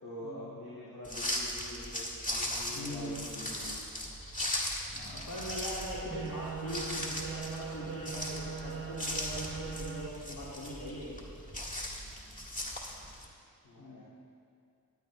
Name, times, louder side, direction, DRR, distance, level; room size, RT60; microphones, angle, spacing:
voice 1, 0.0-3.8 13.6-14.0, left 1 dB, 75° left, -11 dB, 2.9 m, -45 dB
sound 1, 1.0-13.3, left 1 dB, 20° left, 1.9 m, -38 dB
voice 2, 2.7-3.2 4.9-11.2 13.8-14.0, equal, 60° left, -9 dB, 2.1 m, -41 dB
sound 2, 6.1-10.1, right 7 dB, 35° right, 0.7 m, -41 dB
19.5 x 9.7 x 2.4 m, 2.4 s
cardioid pair, 65°, 37 cm